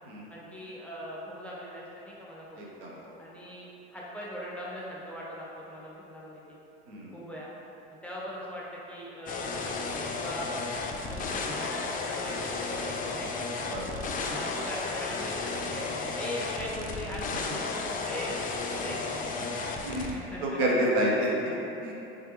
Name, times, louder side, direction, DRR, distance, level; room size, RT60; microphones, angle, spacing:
voice 1, 0.3-2.6 3.2-6.6 7.1-7.5 8.0-10.5 11.1-13.5 14.2-18.3 18.6-19.0 20.1-20.8, equal, 5° left, -6 dB, 0.8 m, -40 dB
voice 2, 2.6-3.0 6.9-7.1 13.6-13.8 19.8-21.9, right 1 dB, 70° right, -4 dB, 0.9 m, -29 dB
sound 1, 9.3-20.1, left 3 dB, 25° left, 0.4 m, -33 dB
3.7 x 3.3 x 3.1 m, 3.0 s
hypercardioid pair, 80°, 31 cm